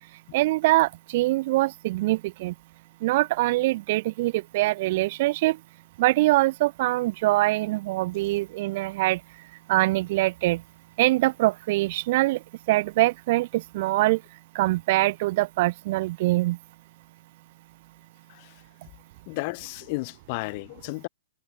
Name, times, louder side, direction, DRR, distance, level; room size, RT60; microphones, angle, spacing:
voice 1, 0.3-2.5 3.0-5.6 6.0-9.2 9.7-10.6 11.0-12.4 12.7-14.2 14.5-16.6, right 19 dB, 50° right, 0.9 m, -23 dB
voice 2, 19.3-21.1, left 27 dB, 45° left, 3.0 m, -33 dB
hypercardioid pair, 135°, 0 cm